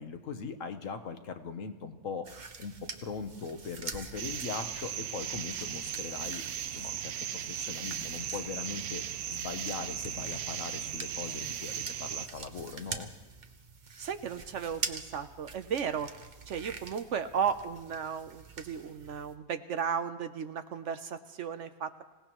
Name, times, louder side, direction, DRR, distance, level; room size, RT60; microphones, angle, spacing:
voice 1, 0.0-2.7 3.0-6.4 6.7-9.0 9.3-13.1, left 5 dB, 65° left, 8 dB, 1.3 m, -40 dB
sound 1, 2.2-19.3, right 4 dB, 35° right, 0.9 m, -45 dB
sound 2, 4.2-12.3, right 9 dB, 85° right, 1.2 m, -37 dB
voice 2, 14.0-16.1 16.5-22.0, right 7 dB, 65° right, 10 dB, 1.0 m, -34 dB
26.0 x 17.5 x 3.0 m, 1.2 s
omnidirectional pair, 1.5 m